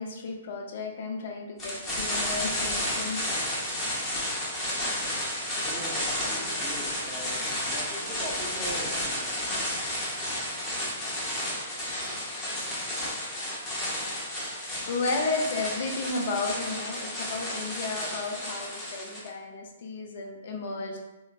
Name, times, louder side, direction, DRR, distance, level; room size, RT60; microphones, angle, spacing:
voice 1, 0.0-3.2 14.9-21.0, left 3 dB, 60° left, 1 dB, 0.5 m, -33 dB
sound 1, 1.6-19.3, left 1 dB, 20° left, 0.8 m, -32 dB
voice 2, 5.6-9.5, equal, 20° right, -6 dB, 0.4 m, -41 dB
3.1 x 2.0 x 2.3 m, 1.1 s
hypercardioid pair, 140°, 0 cm